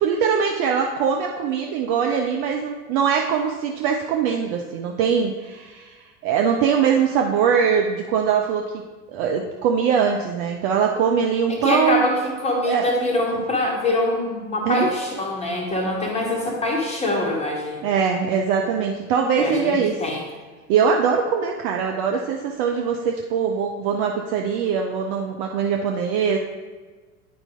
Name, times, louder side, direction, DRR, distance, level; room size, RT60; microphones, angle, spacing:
voice 1, 0.0-8.8 9.1-12.1 12.7-12.9 14.7-14.9 17.8-19.9 20.7-26.4, right 6 dB, 35° right, 2 dB, 0.5 m, -22 dB
voice 2, 11.5-17.9 19.4-20.3, left 1 dB, 15° left, -1 dB, 1.6 m, -24 dB
9.4 x 4.6 x 3.7 m, 1.3 s
figure-of-eight pair, 85°, 43 cm